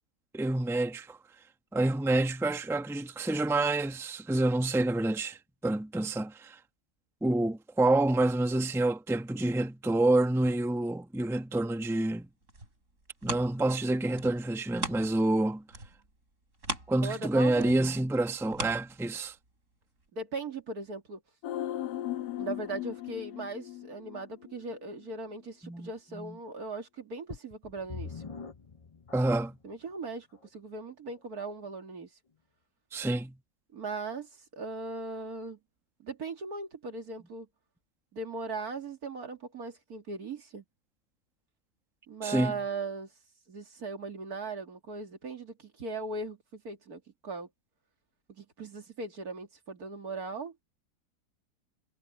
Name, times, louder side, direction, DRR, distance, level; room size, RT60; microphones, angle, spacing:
voice 1, 0.3-1.2 1.7-6.6 7.2-12.3 13.2-15.6 16.9-19.3 25.6-25.9 26.1-26.3 29.1-29.6 32.9-33.4 42.2-42.6, right 2 dB, ahead, 1.0 m, -28 dB
sound 1, 12.2-15.4 15.7-19.5 20.0-20.1, right 1 dB, 50° right, 6.4 m, -40 dB
voice 2, 17.0-17.8 20.1-21.2 22.4-28.2 29.6-30.3 30.5-32.1 33.7-35.6 36.0-37.5 38.1-40.6 42.1-43.1 43.5-47.5 48.3-50.6, right 3 dB, 70° right, 2.8 m, -39 dB
sound 2, 21.4-24.7 25.0-25.1, left 12 dB, 85° left, 1.2 m, -37 dB
sound 3, 27.3-29.7 30.4-30.5 31.1-31.2, left 5 dB, 35° left, 0.5 m, -44 dB
omnidirectional pair, 1.6 m